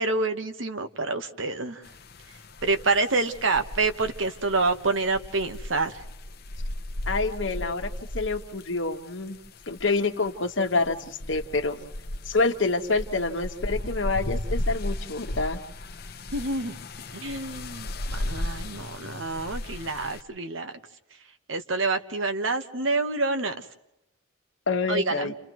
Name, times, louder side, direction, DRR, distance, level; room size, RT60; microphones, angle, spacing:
voice 1, 0.0-1.8 2.6-6.0 16.3-16.7 17.1-20.8 21.5-23.6 24.9-25.3, right 3 dB, 75° right, 8 dB, 1.2 m, -27 dB
sound 1, 1.8-20.2, left 1 dB, 50° left, 0.9 m, -36 dB
voice 2, 7.1-9.4 9.7-11.8 12.3-15.6 24.7-25.3, left 3 dB, 70° left, 5 dB, 1.4 m, -27 dB
30.0 x 29.0 x 3.1 m, 0.90 s
head